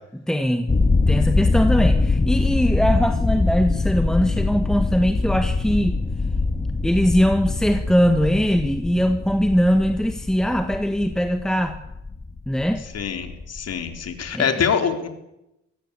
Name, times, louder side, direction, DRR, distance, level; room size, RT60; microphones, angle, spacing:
voice 1, 0.1-0.7 1.1-6.0 6.8-11.8 12.5-12.8 14.3-14.6, equal, ahead, 7 dB, 1.7 m, -21 dB
sound 1, 0.7-14.3, left 3 dB, 20° left, 2.0 m, -23 dB
voice 2, 12.9-15.1, left 7 dB, 55° left, 6 dB, 4.0 m, -24 dB
24.5 x 17.5 x 8.4 m, 0.87 s
cardioid pair, 90°, 30 cm